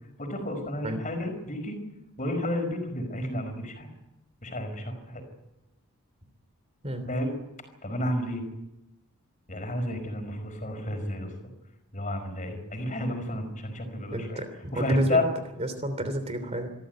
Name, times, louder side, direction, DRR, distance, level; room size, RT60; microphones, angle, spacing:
voice 1, 0.2-1.8 2.2-3.9 4.4-5.2 7.1-7.4 7.8-8.4 9.5-11.3 11.9-14.5 14.7-15.2, left 1 dB, 35° left, 6 dB, 5.0 m, -31 dB
voice 2, 14.1-15.2 15.6-16.7, right 1 dB, 30° right, 9 dB, 3.2 m, -32 dB
25.5 x 14.0 x 9.4 m, 0.96 s
head